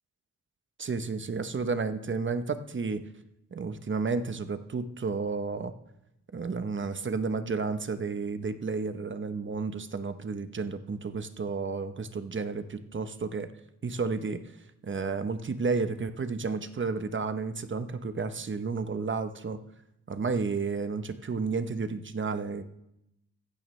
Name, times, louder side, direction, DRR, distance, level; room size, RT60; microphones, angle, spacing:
voice 1, 0.8-3.0 3.5-5.7 6.3-13.5 13.8-14.4 14.8-19.6 20.1-22.6, right 4 dB, 40° right, 10 dB, 0.9 m, -32 dB
15.0 x 14.5 x 3.3 m, 0.84 s
cardioid pair, 85°, 31 cm